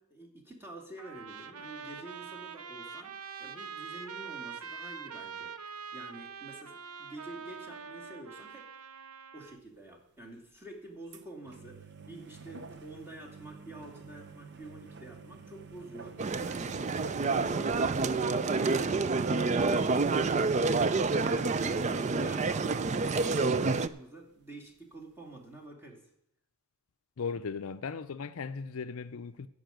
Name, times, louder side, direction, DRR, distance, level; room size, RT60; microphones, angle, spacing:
voice 1, 0.0-3.1 3.4-5.5 5.9-8.7 9.3-20.6 21.0-26.0, right 1 dB, 10° right, 2.5 m, -48 dB
Trumpet, 1.0-9.6, right 6 dB, 80° right, 0.8 m, -44 dB
sound 1, 9.5-9.7 10.4-10.5 11.1-22.3 22.6-22.7 22.9-23.6 24.0-24.1 24.3-24.4 25.0-25.1, right 5 dB, 50° right, 0.9 m, -49 dB
sound 2, 16.2-23.9, right 3 dB, 30° right, 0.4 m, -28 dB
voice 2, 27.2-29.5, left 5 dB, 65° left, 0.5 m, -37 dB
13.0 x 5.5 x 9.1 m
head